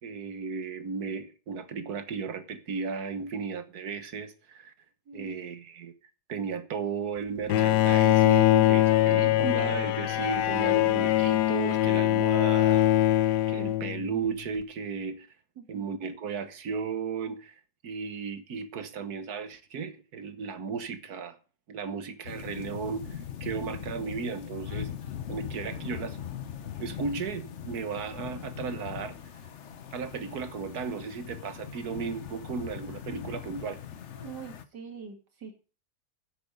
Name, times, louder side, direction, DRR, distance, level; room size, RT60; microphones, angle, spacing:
voice 1, 0.0-4.7 5.1-5.9 6.3-12.8 13.1-15.3 15.7-21.4 21.7-24.9 25.3-26.2 26.8-29.2 29.9-33.8, right 5 dB, 70° right, 1.7 m, -35 dB
Bowed string instrument, 7.5-14.3, left 15 dB, 85° left, 1.3 m, -23 dB
sound 1, 22.2-34.6, left 9 dB, 50° left, 1.1 m, -40 dB
voice 2, 34.1-35.5, right 6 dB, 90° right, 3.0 m, -44 dB
9.6 x 8.4 x 6.6 m
omnidirectional pair, 1.8 m